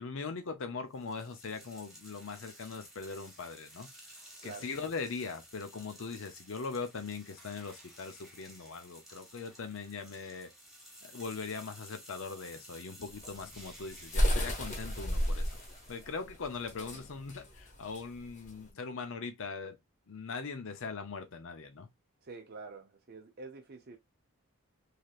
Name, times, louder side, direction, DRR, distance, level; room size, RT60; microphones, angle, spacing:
voice 1, 0.0-3.9 4.4-10.5 11.0-15.5 15.9-19.8 20.1-21.9, left 4 dB, 65° left, 0.6 m, -40 dB
sound 1, 0.9-16.2, right 1 dB, ahead, 1.1 m, -54 dB
sound 2, 13.1-18.7, equal, 35° left, 1.0 m, -32 dB
voice 2, 22.2-24.0, right 4 dB, 45° right, 0.5 m, -47 dB
3.3 x 2.8 x 2.4 m
head